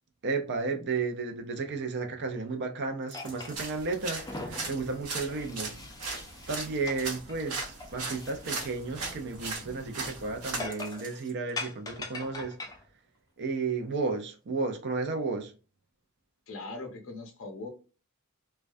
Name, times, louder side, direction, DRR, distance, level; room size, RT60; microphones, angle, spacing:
voice 1, 0.2-5.7 6.5-12.6 13.4-15.5, right 4 dB, 55° right, 0.5 m, -33 dB
sound 1, 3.0-3.9 4.6-4.7 5.6-6.4 6.7-7.5 8.0-9.2 9.5-9.7 10.0-10.2 10.7-11.5 12.0-12.1, right 2 dB, 35° right, 0.9 m, -54 dB
sound 2, 3.1-3.9 4.2-6.5 6.9-7.0 7.3-8.7 9.0-9.1 10.6-11.1 11.6-12.8, left 2 dB, 15° left, 0.4 m, -41 dB
sound 3, 3.6-10.7, right 3 dB, 90° right, 0.7 m, -38 dB
voice 2, 16.5-17.7, left 3 dB, 65° left, 0.7 m, -40 dB
2.2 x 2.2 x 2.5 m
head